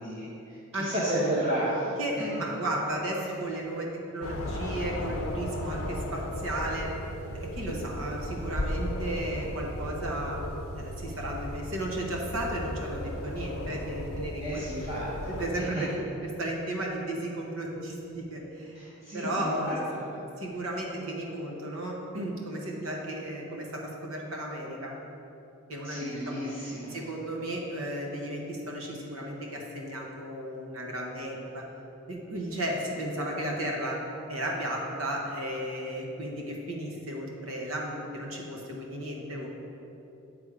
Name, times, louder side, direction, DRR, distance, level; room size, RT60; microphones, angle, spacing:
voice 1, 0.0-2.0 3.2-3.3 14.4-15.1 15.6-15.7 18.7-20.0 25.8-27.0, right 1 dB, 30° right, -10 dB, 1.0 m, -32 dB
voice 2, 2.0-6.9 7.3-10.4 10.7-14.6 15.4-18.8 19.1-19.8 20.4-25.0 25.7-26.4 26.9-31.6 32.1-34.0 34.3-39.5, right 1 dB, 75° right, -1 dB, 1.0 m, -34 dB
sound 1, 4.2-15.5, left 1 dB, 80° left, 0.6 m, -35 dB
8.4 x 3.5 x 4.8 m, 2.9 s
head